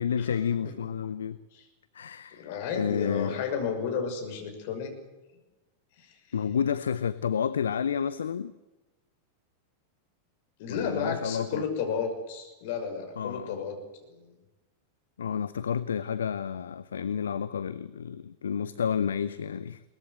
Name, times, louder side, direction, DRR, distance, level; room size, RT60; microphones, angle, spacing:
voice 1, 0.0-1.4 1.9-3.4 6.3-8.5 10.7-11.6 13.2-13.7 15.2-19.8, left 7 dB, 65° left, 15 dB, 0.7 m, -30 dB
voice 2, 2.3-4.9 6.0-6.1 10.6-13.8 14.1-14.3, left 6 dB, 50° left, 5 dB, 6.1 m, -32 dB
22.5 x 20.0 x 8.1 m, 1.1 s
figure-of-eight pair, 90°, 0 cm